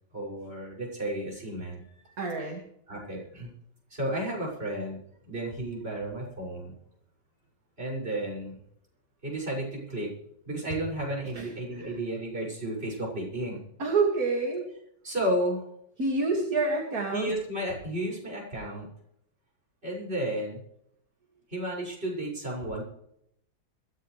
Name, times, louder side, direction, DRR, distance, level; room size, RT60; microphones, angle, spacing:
voice 1, 0.1-2.2 2.9-3.5 3.9-5.0 5.3-6.8 7.8-8.6 9.2-10.1 10.5-13.6 15.0-15.6 17.1-18.9 19.8-20.6 21.5-22.8, right 1 dB, 30° right, -3 dB, 6.8 m, -32 dB
voice 2, 2.2-2.6 11.3-11.5 11.8-11.9 13.8-14.7 16.0-17.3, right 3 dB, 50° right, 1 dB, 2.7 m, -27 dB
21.5 x 16.0 x 3.3 m, 0.74 s
omnidirectional pair, 2.0 m